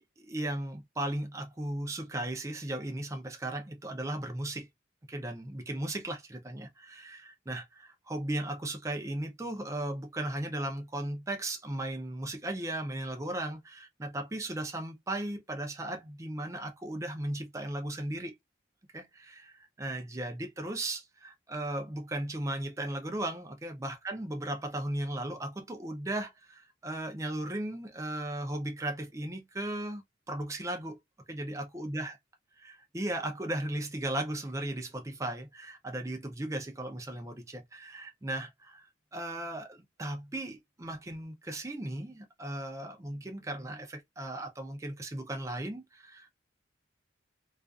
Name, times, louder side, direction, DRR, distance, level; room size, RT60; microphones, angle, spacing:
voice 1, 0.0-4.7 5.1-18.3 18.9-31.0 31.3-32.2 32.6-46.3, right 1 dB, 15° right, 0.5 m, -36 dB
2.4 x 2.4 x 2.3 m
head